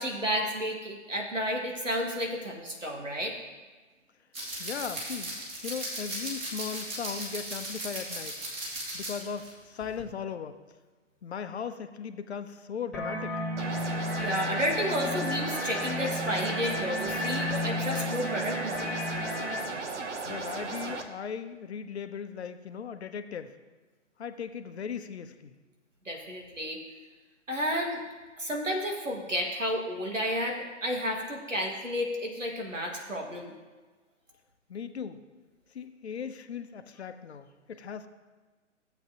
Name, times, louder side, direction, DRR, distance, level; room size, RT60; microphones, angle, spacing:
voice 1, 0.0-3.4 14.2-18.9 26.1-26.8 27.5-28.0 28.4-33.5, equal, 90° right, 1 dB, 2.0 m, -31 dB
sound 1, 4.3-9.5 9.8-10.0, right 1 dB, 25° right, 2.6 m, -37 dB
voice 2, 4.6-8.4 8.9-10.6 11.2-13.3 20.2-23.5 24.2-25.6 34.7-35.2 35.7-38.1, left 7 dB, 60° left, 9 dB, 0.8 m, -38 dB
sound 2, 12.9-19.6, left 1 dB, ahead, 0.6 m, -33 dB
sound 3, 13.6-21.0, right 4 dB, 70° right, 1.1 m, -36 dB
14.0 x 7.9 x 2.9 m, 1.3 s
figure-of-eight pair, 130°, 37 cm